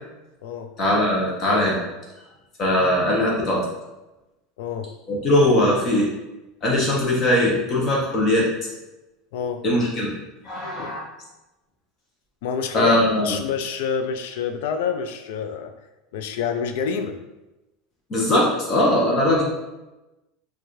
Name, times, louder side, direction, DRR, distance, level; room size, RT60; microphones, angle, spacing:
voice 1, 0.8-1.8 2.6-3.6 5.1-6.1 6.6-8.5 9.6-10.1 10.4-11.0 12.7-13.4 18.1-19.4, left 1 dB, 30° left, -3 dB, 0.8 m, -20 dB
voice 2, 4.6-4.9 9.3-9.6 12.4-12.9 13.2-15.7 16.1-17.2, left 6 dB, 75° left, 7 dB, 0.4 m, -27 dB
4.4 x 2.4 x 3.1 m, 1.0 s
supercardioid pair, 150°, 0 cm